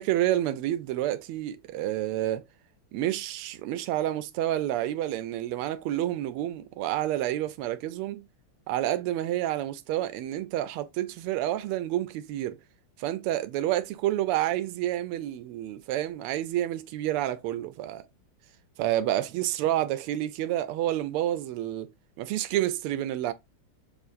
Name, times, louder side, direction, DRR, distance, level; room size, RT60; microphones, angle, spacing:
voice 1, 0.0-2.4 2.9-8.2 8.7-12.6 13.0-18.1 18.8-21.9 22.2-23.3, right 13 dB, 90° right, 1.5 m, -29 dB
6.7 x 2.5 x 2.4 m
omnidirectional pair, 2.4 m